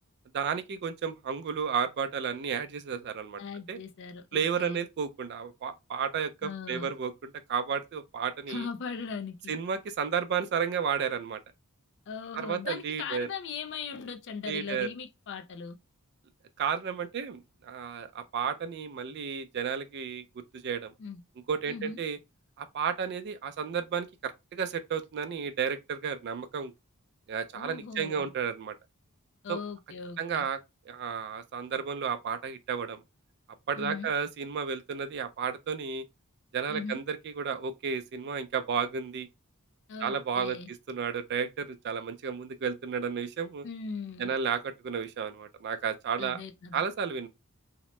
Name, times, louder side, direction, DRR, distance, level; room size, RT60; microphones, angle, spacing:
voice 1, 0.3-3.4 3.7-3.8 4.3-8.7 9.5-11.4 12.4-13.3 14.5-14.9 16.6-20.2 20.6-20.9 21.5-22.2 22.6-26.7 27.3-28.7 29.5-29.6 30.2-30.6 30.9-33.0 33.7-36.0 36.5-39.3 40.0-40.6 40.9-43.7 44.2-46.4 46.7-47.3, right 6 dB, 50° right, 0.3 m, -32 dB
voice 2, 3.4-4.8 6.4-6.9 8.5-9.5 12.1-15.8 21.0-21.2 21.7-22.0 27.5-28.3 29.4-30.5 33.8-34.1 36.7-37.0 39.9-40.7 43.6-44.3 46.2-46.9, left 5 dB, 55° left, 0.4 m, -39 dB
2.8 x 2.0 x 3.1 m
head